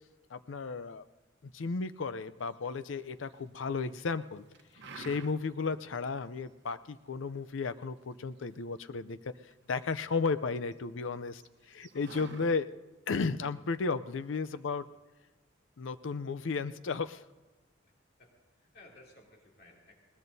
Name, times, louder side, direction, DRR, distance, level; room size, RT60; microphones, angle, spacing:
voice 1, 0.3-1.0 1.4-4.4 5.0-9.2 9.7-11.4 11.7-12.7 13.1-14.8 15.8-17.2, left 4 dB, 80° left, 13 dB, 0.5 m, -34 dB
sound 1, 2.6-3.4 3.8-4.2 4.5-5.6 6.0-6.1 6.4-6.9 7.4-9.2 9.5-10.7 11.0-11.1 11.3-12.5, right 3 dB, 60° right, 1.0 m, -49 dB
voice 2, 18.2-20.2, left 2 dB, 55° left, -1 dB, 2.8 m, -59 dB
21.0 x 19.0 x 2.7 m, 1.2 s
head